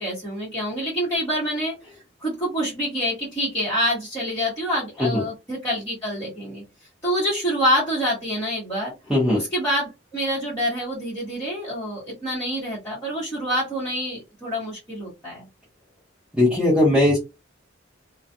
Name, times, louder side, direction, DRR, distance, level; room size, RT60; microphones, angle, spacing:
voice 1, 0.0-1.8 2.2-6.6 7.0-8.9 9.3-15.4, equal, 15° left, -9 dB, 1.1 m, -26 dB
voice 2, 16.3-17.2, left 1 dB, 5° right, -8 dB, 0.9 m, -18 dB
2.3 x 2.3 x 2.6 m, 0.25 s
head